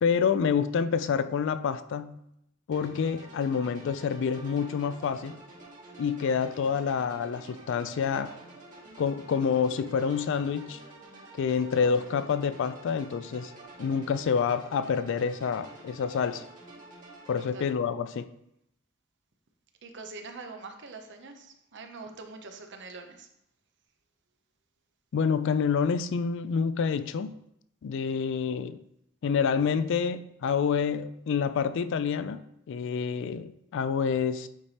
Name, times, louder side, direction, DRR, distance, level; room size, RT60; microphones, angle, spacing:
voice 1, 0.0-2.2 2.7-5.4 6.0-8.3 9.0-10.8 11.4-13.5 13.8-16.5 17.3-18.3 25.1-27.4 27.8-28.8 29.2-34.5, left 6 dB, 60° left, 0.3 m, -28 dB
sound 1, 2.7-17.5, right 2 dB, 40° right, 1.8 m, -49 dB
voice 2, 6.6-7.0 17.5-17.7 19.8-23.3, right 3 dB, 60° right, 0.8 m, -44 dB
8.5 x 3.4 x 4.1 m
head